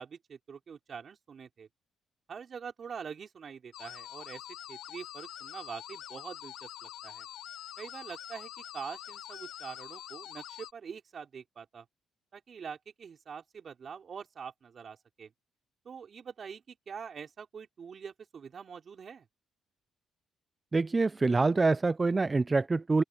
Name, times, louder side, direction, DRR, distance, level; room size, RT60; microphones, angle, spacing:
voice 1, 0.0-1.7 2.3-4.4 4.7-7.3 7.8-11.8 12.3-15.3 15.8-19.3, right 6 dB, 50° right, 4.7 m, -44 dB
sound 1, 3.7-10.7, left 12 dB, 80° left, 0.5 m, -45 dB
voice 2, 20.7-23.0, right 3 dB, 25° right, 0.4 m, -26 dB
open air
cardioid pair, 90°, 0 cm